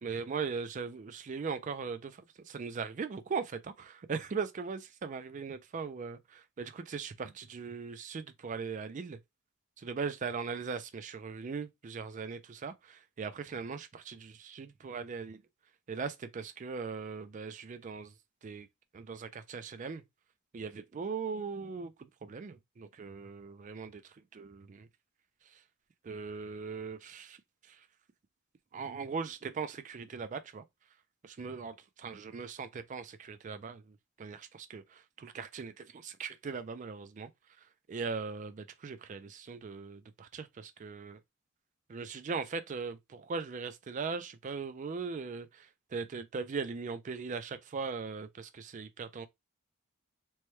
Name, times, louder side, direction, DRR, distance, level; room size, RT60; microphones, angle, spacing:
voice 1, 0.0-9.2 9.8-15.4 15.9-18.1 18.4-18.7 18.9-20.0 20.5-24.9 25.4-25.6 26.0-27.4 27.6-27.9 28.7-30.6 31.2-37.3 37.6-41.2 41.9-49.3, right 5 dB, 35° right, 0.3 m, -39 dB
3.0 x 2.2 x 3.1 m
head